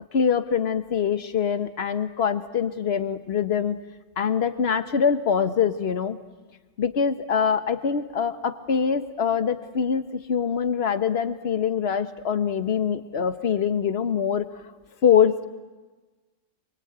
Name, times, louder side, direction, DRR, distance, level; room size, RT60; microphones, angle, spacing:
voice 1, 0.1-3.8 4.2-6.2 6.8-14.5 15.0-15.5, left 7 dB, 40° left, 11 dB, 1.3 m, -24 dB
28.5 x 23.0 x 8.9 m, 1.3 s
omnidirectional pair, 2.0 m